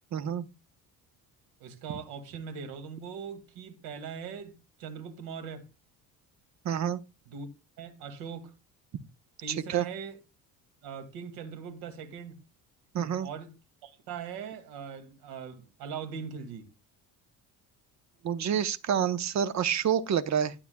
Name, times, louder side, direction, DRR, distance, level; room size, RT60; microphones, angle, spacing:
voice 1, 0.1-0.5 6.6-7.0 9.5-9.8 12.9-13.3 18.2-20.5, right 8 dB, 45° right, 1.0 m, -28 dB
voice 2, 1.6-4.5 4.8-5.7 7.3-7.5 7.8-8.5 9.4-10.2 10.8-12.4 13.2-13.6 13.8-16.7, right 6 dB, 85° right, 2.2 m, -40 dB
12.0 x 8.8 x 2.3 m
cardioid pair, 105°, 37 cm